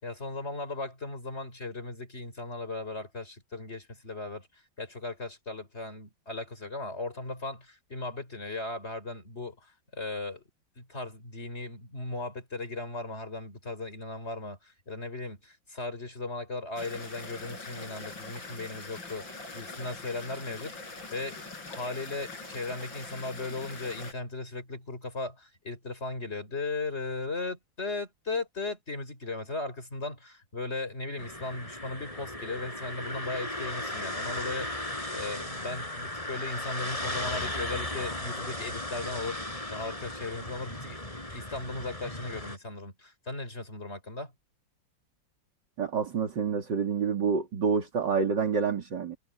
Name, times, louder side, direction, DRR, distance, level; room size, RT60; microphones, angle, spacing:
voice 1, 0.0-10.4 10.8-19.2 19.5-21.4 21.7-39.4 39.7-41.0 41.3-44.3, left 3 dB, 35° left, 5.1 m, -37 dB
sound 1, 16.8-24.1, left 3 dB, 85° left, 6.3 m, -43 dB
sound 2, 31.2-42.6, left 1 dB, 15° left, 5.2 m, -36 dB
voice 2, 45.8-49.2, right 6 dB, 70° right, 3.2 m, -28 dB
omnidirectional pair, 2.0 m